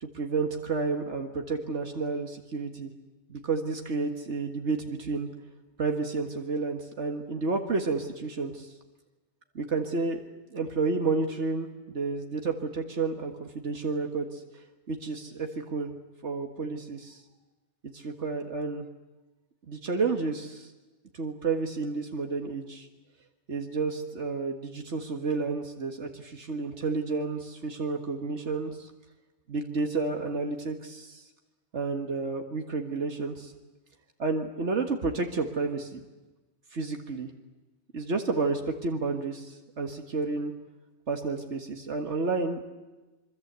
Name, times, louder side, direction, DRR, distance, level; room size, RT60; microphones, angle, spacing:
voice 1, 0.0-2.9 3.3-5.3 5.8-8.7 9.6-10.2 10.5-14.4 14.9-15.9 16.2-17.2 17.8-18.8 19.7-20.7 21.1-22.9 23.5-28.9 29.5-31.3 31.7-33.5 34.2-36.0 36.7-37.3 37.9-40.5 41.1-42.6, right 4 dB, 80° right, 4 dB, 2.0 m, -31 dB
26.0 x 24.0 x 8.2 m, 1.2 s
omnidirectional pair, 1.2 m